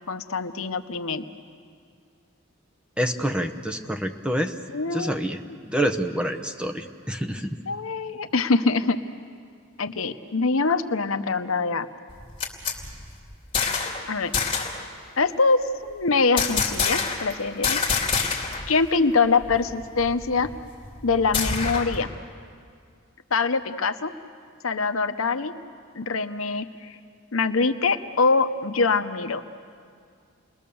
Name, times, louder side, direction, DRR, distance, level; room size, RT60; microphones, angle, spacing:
voice 1, 0.1-1.2 4.7-5.3 7.7-9.0 9.8-11.9 14.1-14.3 15.2-17.8 18.7-20.5 21.0-22.1 23.3-24.1 24.6-25.5 25.9-26.9 27.3-29.4, left 4 dB, 80° left, 10 dB, 0.9 m, -24 dB
voice 2, 3.0-4.5 4.9-7.6, right 1 dB, 5° right, 6 dB, 0.9 m, -27 dB
sound 1, 12.1-14.0 14.3-14.8 16.4-17.3 17.6-18.7 19.0-19.1 19.4-22.0, left 5 dB, 25° left, 2.8 m, -27 dB
29.5 x 21.0 x 7.1 m, 2.2 s
head